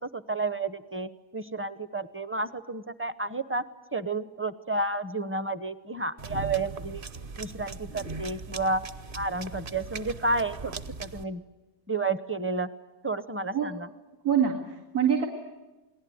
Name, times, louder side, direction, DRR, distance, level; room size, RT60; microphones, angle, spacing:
voice 1, 0.0-3.6 3.9-7.0 7.4-8.8 9.1-10.7 11.0-11.4 11.9-12.7 13.0-13.9, right 3 dB, 15° right, 14 dB, 0.6 m, -31 dB
sound 1, 6.2-11.2, right 4 dB, 40° right, 1.0 m, -39 dB
voice 2, 14.2-15.3, right 8 dB, 90° right, 0 dB, 2.7 m, -25 dB
29.0 x 20.0 x 9.4 m, 1.1 s
omnidirectional pair, 1.6 m